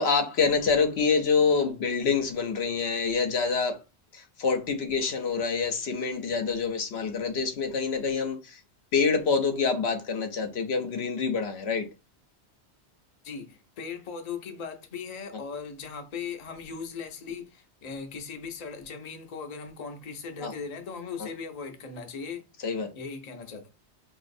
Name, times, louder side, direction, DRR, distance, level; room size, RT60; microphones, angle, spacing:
voice 1, 0.0-3.8 4.1-8.6 8.9-11.9 20.4-20.5 21.2-21.3 22.6-22.9, left 5 dB, 70° left, 0.9 m, -26 dB
voice 2, 13.2-22.5 22.9-23.7, left 5 dB, 45° left, 0.7 m, -38 dB
4.8 x 2.6 x 2.6 m
omnidirectional pair, 1.1 m